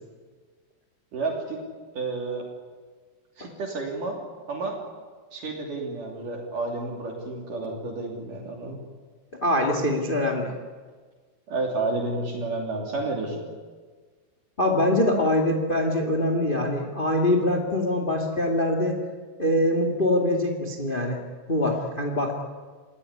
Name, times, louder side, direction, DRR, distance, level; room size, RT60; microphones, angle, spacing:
voice 1, 1.1-1.6 1.9-2.5 3.4-4.2 4.5-4.8 5.3-8.8 11.5-13.4, right 3 dB, 50° right, 0 dB, 4.3 m, -30 dB
voice 2, 9.4-10.5 14.6-19.0 19.4-21.2 21.5-22.4, left 1 dB, 20° left, 3 dB, 1.4 m, -23 dB
29.0 x 17.5 x 9.9 m, 1.5 s
omnidirectional pair, 4.9 m